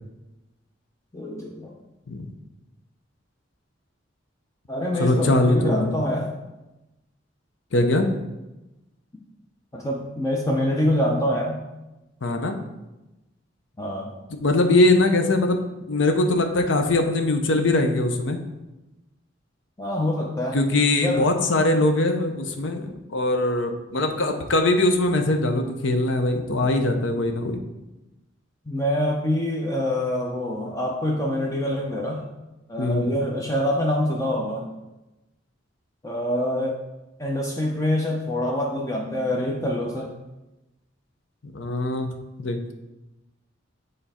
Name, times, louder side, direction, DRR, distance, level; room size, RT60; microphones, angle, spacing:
voice 1, 1.1-1.7 4.7-6.3 9.7-11.6 13.8-14.1 19.8-20.6 20.9-21.3 28.7-32.2 32.7-34.7 36.0-36.8 37.2-40.1, left 1 dB, 15° left, -1 dB, 0.6 m, -25 dB
voice 2, 5.0-5.9 7.7-8.1 12.2-12.6 14.3-18.4 20.5-27.6 32.8-33.1 41.5-42.1 42.4-42.7, left 2 dB, 80° left, 5 dB, 0.7 m, -22 dB
7.0 x 3.3 x 4.2 m, 0.99 s
head